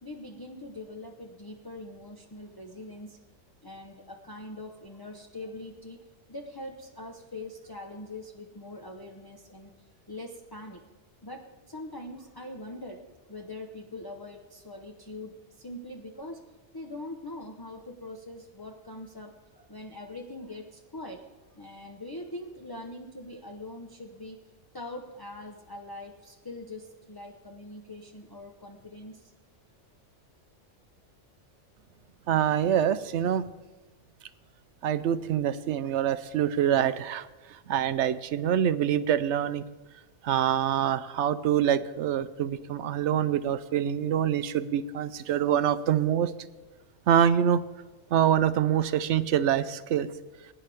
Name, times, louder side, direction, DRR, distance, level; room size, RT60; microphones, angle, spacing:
voice 1, 0.0-3.2 3.6-6.0 6.3-10.8 11.2-13.0 13.3-21.2 21.5-24.4 24.7-29.3, left 1 dB, 20° left, 1 dB, 0.8 m, -42 dB
voice 2, 32.3-33.4 34.8-37.3 37.7-39.6 40.2-46.3 47.1-47.6 48.1-50.1, right 9 dB, 75° right, 14 dB, 0.9 m, -25 dB
20.5 x 9.9 x 3.5 m, 1.1 s
omnidirectional pair, 1.2 m